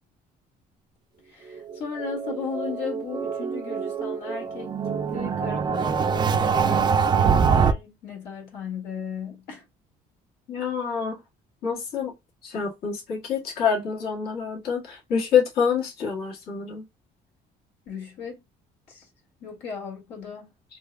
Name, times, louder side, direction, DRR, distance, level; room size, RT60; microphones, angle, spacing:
voice 1, 1.2-9.7 17.9-18.4 18.9-19.1 19.4-20.5, left 6 dB, 80° left, 2.0 m, -36 dB
sound 1, 1.6-7.7, right 6 dB, 25° right, 0.4 m, -24 dB
voice 2, 10.5-11.2 11.6-12.2 12.4-16.9, left 6 dB, 65° left, 1.8 m, -26 dB
4.4 x 2.8 x 2.2 m
cardioid pair, 110°, 17 cm